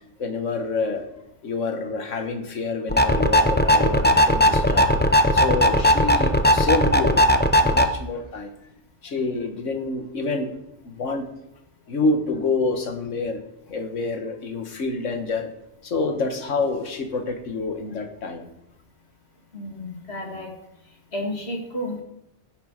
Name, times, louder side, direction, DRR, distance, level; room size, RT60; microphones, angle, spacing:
voice 1, 0.2-1.1 1.4-4.9 5.3-8.5 9.0-10.5 10.8-11.3 11.9-13.4 13.7-15.5 15.8-18.5, left 3 dB, 75° left, 6 dB, 1.7 m, -27 dB
sound 1, 2.9-7.9, left 1 dB, 10° left, 0.6 m, -18 dB
voice 2, 19.5-20.5 21.1-22.0, left 1 dB, 55° left, -1 dB, 3.1 m, -31 dB
15.5 x 6.9 x 5.1 m, 0.81 s
omnidirectional pair, 1.3 m